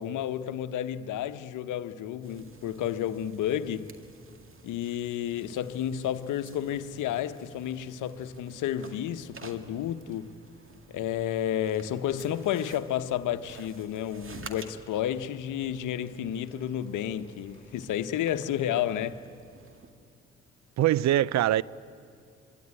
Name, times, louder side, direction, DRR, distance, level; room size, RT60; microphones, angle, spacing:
voice 1, 0.0-3.9 4.6-10.3 10.9-19.2, left 10 dB, 65° left, 1.0 m, -31 dB
sound 1, 2.2-19.9, right 3 dB, 40° right, 2.2 m, -51 dB
voice 2, 20.8-21.6, right 13 dB, 55° right, 0.6 m, -23 dB
25.5 x 23.0 x 9.6 m
hypercardioid pair, 45°, 33 cm